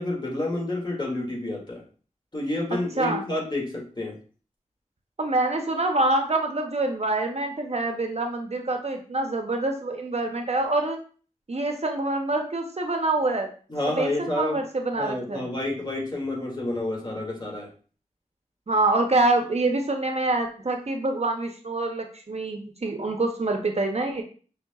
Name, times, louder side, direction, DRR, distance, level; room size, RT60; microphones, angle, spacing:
voice 1, 0.0-1.8 2.3-4.1 13.7-14.6 14.9-17.7, left 2 dB, 35° left, -2 dB, 2.1 m, -29 dB
voice 2, 2.7-3.2 5.2-11.0 11.5-13.5 14.0-15.5 18.7-24.2, right 2 dB, 55° right, 4 dB, 0.7 m, -26 dB
5.8 x 3.4 x 2.3 m, 0.40 s
wide cardioid pair, 50°, 13 cm